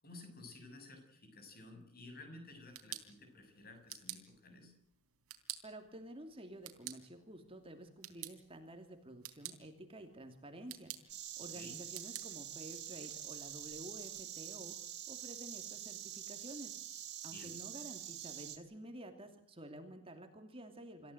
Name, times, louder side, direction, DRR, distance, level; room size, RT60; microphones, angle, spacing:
voice 1, 0.0-4.7 11.4-11.7 17.3-17.6, left 2 dB, 45° left, 6 dB, 7.0 m, -53 dB
sound 1, 2.4-14.2, right 13 dB, 90° right, 3.5 m, -52 dB
voice 2, 5.6-14.8 15.1-16.8 17.2-21.1, right 1 dB, 25° right, 6 dB, 2.7 m, -51 dB
Insect, 11.1-18.6, right 11 dB, 50° right, 3.5 m, -46 dB
27.5 x 15.5 x 8.0 m, 0.70 s
head